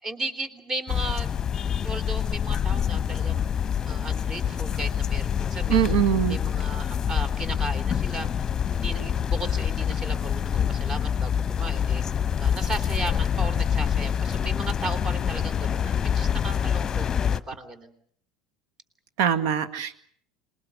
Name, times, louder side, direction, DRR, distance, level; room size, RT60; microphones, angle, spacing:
voice 1, 0.0-1.3 1.8-3.4 3.9-6.0 6.3-12.0 12.4-17.9, right 2 dB, 25° right, 11 dB, 3.5 m, -36 dB
sound 1, 0.9-17.4, left 8 dB, 30° left, 1.0 m, -26 dB
voice 2, 5.7-6.4 19.2-20.0, right 10 dB, 60° right, 13 dB, 1.8 m, -23 dB
26.5 x 21.0 x 8.2 m, 0.63 s
figure-of-eight pair, 75°, 2 cm